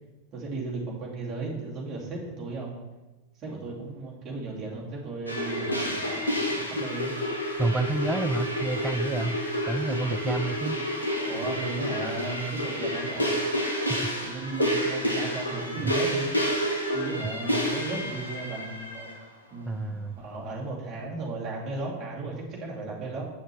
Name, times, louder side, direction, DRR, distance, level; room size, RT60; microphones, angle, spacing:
voice 1, 0.3-2.7 3.4-7.1 11.2-13.3 14.2-16.3 16.9-19.1 19.5-23.2, right 3 dB, 30° right, -4 dB, 2.7 m, -35 dB
sound 1, 5.3-19.1, equal, 85° left, 1.7 m, -29 dB
voice 2, 7.6-9.4 9.7-10.8 13.9-14.0 15.8-15.9 19.7-20.2, right 2 dB, 10° right, 9 dB, 0.4 m, -29 dB
8.7 x 6.4 x 4.7 m, 1.1 s
figure-of-eight pair, 90°, 0 cm